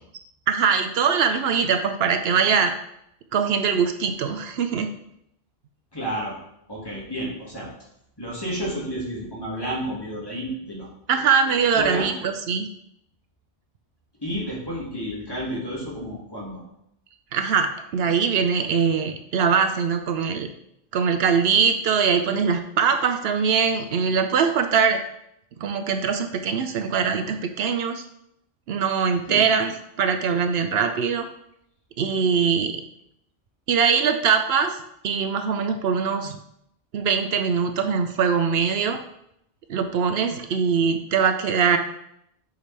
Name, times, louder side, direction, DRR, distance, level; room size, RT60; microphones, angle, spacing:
voice 1, 0.5-2.7 3.3-4.9 11.1-12.7 17.3-20.5 20.9-25.0 25.6-28.0 28.7-29.7 30.0-31.3 32.0-32.8 33.7-34.8 35.0-36.3 36.9-39.0 39.7-41.8, right 6 dB, 75° right, 7 dB, 0.8 m, -22 dB
voice 2, 5.9-6.4 6.7-7.7 8.2-10.9 11.2-12.1 14.2-16.6 29.3-29.5, equal, 20° left, -5 dB, 2.1 m, -31 dB
8.0 x 4.9 x 3.3 m, 0.76 s
omnidirectional pair, 1.1 m